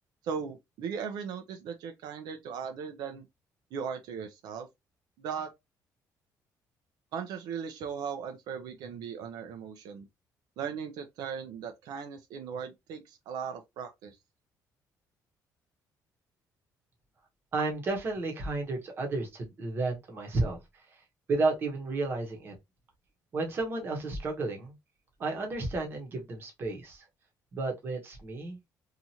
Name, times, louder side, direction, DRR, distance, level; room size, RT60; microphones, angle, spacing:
voice 1, 0.2-3.3 3.7-4.7 5.2-5.5 7.1-10.1 10.6-14.2, right 6 dB, 80° right, 0.5 m, -38 dB
voice 2, 17.5-20.6 21.3-22.5 23.3-24.7 25.2-27.0 27.5-28.6, right 3 dB, 35° right, 0.9 m, -32 dB
2.8 x 2.4 x 2.8 m
cardioid pair, 170°, 7 cm